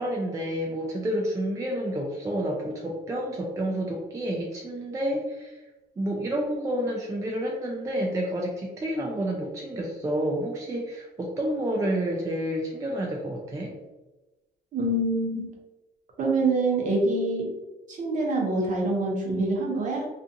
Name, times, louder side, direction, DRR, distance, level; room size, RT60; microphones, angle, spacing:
voice 1, 0.0-5.6 6.0-13.7, right 1 dB, 20° right, -2 dB, 0.4 m, -29 dB
voice 2, 14.7-15.5 16.2-17.5 17.9-20.1, right 2 dB, 50° right, -1 dB, 0.8 m, -25 dB
2.5 x 2.4 x 2.6 m, 1.1 s
cardioid pair, 110°, 17 cm